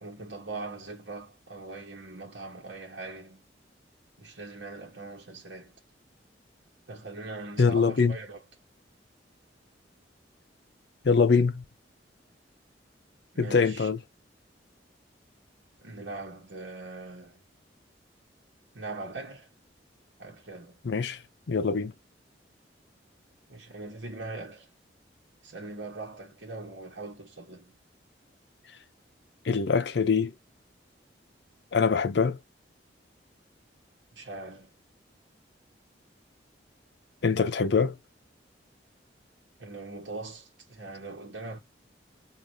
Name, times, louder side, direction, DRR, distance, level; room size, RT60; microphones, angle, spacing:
voice 1, 0.0-3.4 4.2-5.7 6.9-8.4 13.3-13.9 15.8-17.4 18.7-19.5 20.2-20.8 23.5-24.7 25.4-27.7 34.1-34.7 39.6-41.6, right 3 dB, 80° right, 1.1 m, -41 dB
voice 2, 7.6-8.2 11.0-11.6 13.4-14.0 20.8-21.2 21.5-21.9 29.5-30.3 31.7-32.4 37.2-37.9, left 5 dB, 65° left, 0.5 m, -23 dB
4.7 x 2.5 x 2.6 m
head